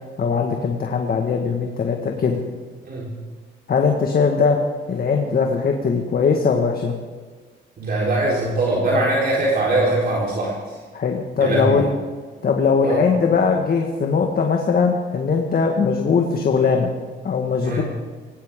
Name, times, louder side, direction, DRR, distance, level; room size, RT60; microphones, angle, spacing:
voice 1, 0.2-2.4 3.7-4.6 4.9-6.9 10.9-11.9 12.4-16.9 17.2-17.8, left 5 dB, 50° left, 2 dB, 1.8 m, -20 dB
voice 2, 7.8-10.6 11.4-11.8 12.8-13.0 17.6-17.8, right 2 dB, 50° right, -5 dB, 4.1 m, -21 dB
19.0 x 17.0 x 3.8 m, 1.4 s
cardioid pair, 90°, 20 cm